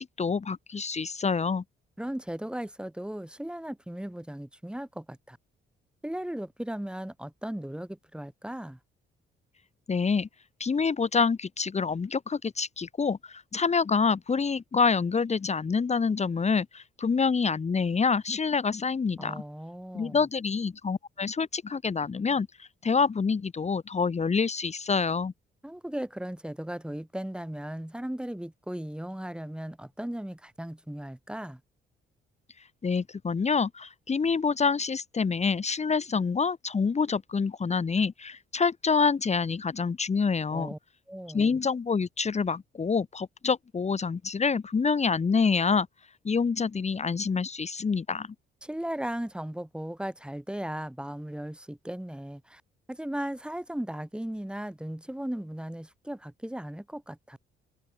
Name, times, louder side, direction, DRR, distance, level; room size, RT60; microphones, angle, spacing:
voice 1, 0.0-1.6 9.9-10.3 10.6-19.4 19.9-25.3 32.8-40.7 41.3-45.9 46.2-48.3, left 5 dB, 35° left, 2.6 m, -27 dB
voice 2, 2.0-5.4 6.0-8.8 19.2-20.2 25.6-31.6 40.5-40.8 41.1-41.5 48.6-52.6 52.9-57.4, right 1 dB, 5° right, 4.6 m, -36 dB
cardioid pair, 90°, 20 cm